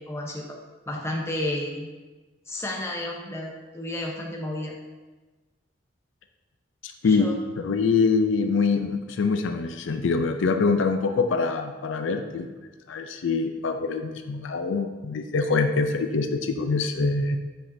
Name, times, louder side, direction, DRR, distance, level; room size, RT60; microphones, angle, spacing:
voice 1, 0.1-0.6 0.9-1.9 2.5-4.8 7.0-7.4, left 1 dB, 15° left, -1 dB, 0.8 m, -32 dB
voice 2, 6.8-12.5 12.9-17.4, left 4 dB, 75° left, 6 dB, 0.4 m, -24 dB
8.7 x 5.1 x 2.7 m, 1.2 s
head